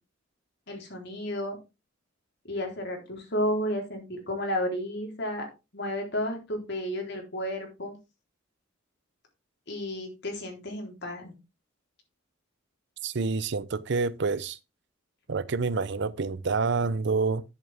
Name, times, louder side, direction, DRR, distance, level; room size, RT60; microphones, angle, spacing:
voice 1, 0.7-1.6 2.5-5.5 5.7-8.0 9.7-11.3, equal, 60° left, 3.7 m, -32 dB
voice 2, 13.0-14.6 15.3-17.4, right 4 dB, 60° right, 0.6 m, -28 dB
10.5 x 7.1 x 3.5 m
head